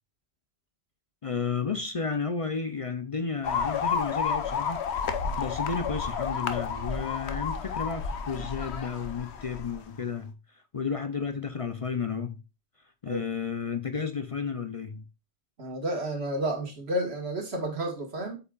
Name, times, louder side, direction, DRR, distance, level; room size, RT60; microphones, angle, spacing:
voice 1, 1.2-4.9 5.4-12.4 13.0-15.0, left 5 dB, 40° left, 0.5 m, -32 dB
sound 1, 3.4-9.8, left 6 dB, 85° left, 1.1 m, -31 dB
voice 2, 15.6-18.4, right 1 dB, 80° right, 2.0 m, -31 dB
8.2 x 5.8 x 2.4 m
omnidirectional pair, 1.1 m